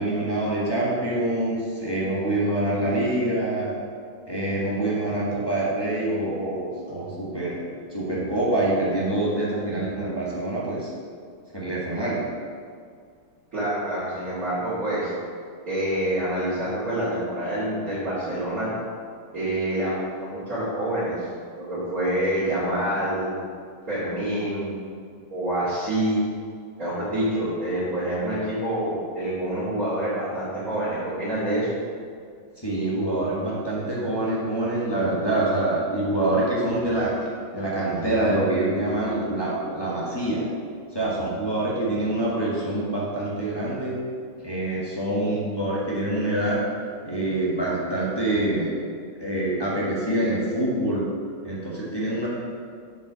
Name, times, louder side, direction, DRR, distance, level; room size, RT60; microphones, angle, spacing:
voice 1, 0.0-3.7 4.3-7.6 7.9-10.9 11.5-12.2 32.6-37.1 37.5-40.5 40.9-44.0 44.4-46.6 47.0-48.7 49.2-51.1 51.4-52.3, right 1 dB, 15° left, -7 dB, 1.4 m, -25 dB
voice 2, 13.5-15.1 15.7-18.7 19.3-19.9 20.2-21.2 21.6-23.3 23.9-24.8 25.3-26.2 26.8-31.7, right 1 dB, 40° right, -14 dB, 2.8 m, -26 dB
7.0 x 5.4 x 6.3 m, 2.1 s
omnidirectional pair, 2.3 m